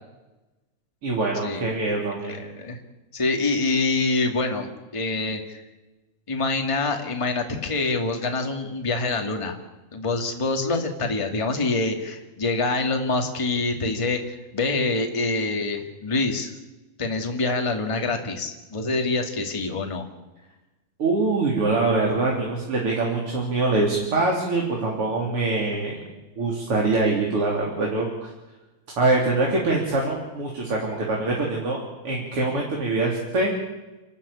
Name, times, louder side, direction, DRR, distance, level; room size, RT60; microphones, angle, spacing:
voice 1, 1.0-2.4 21.0-25.9 26.4-28.3 29.0-33.5, right 3 dB, 40° right, -2 dB, 3.8 m, -24 dB
voice 2, 2.3-2.8 3.1-5.6 6.3-9.6 9.9-16.5 17.0-20.0, left 3 dB, 15° left, 3 dB, 1.3 m, -26 dB
29.0 x 13.0 x 8.7 m, 1.1 s
omnidirectional pair, 4.2 m